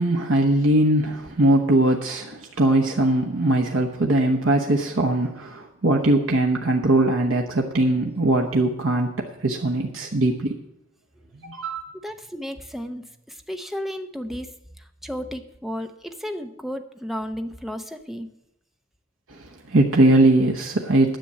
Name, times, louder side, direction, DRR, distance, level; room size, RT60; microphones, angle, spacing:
voice 1, 0.0-10.6 11.4-11.8 19.3-21.2, right 1 dB, 70° right, 2 dB, 1.0 m, -21 dB
voice 2, 12.0-14.5 14.8-18.3, equal, ahead, 6 dB, 0.7 m, -33 dB
10.5 x 6.9 x 8.5 m, 0.85 s
head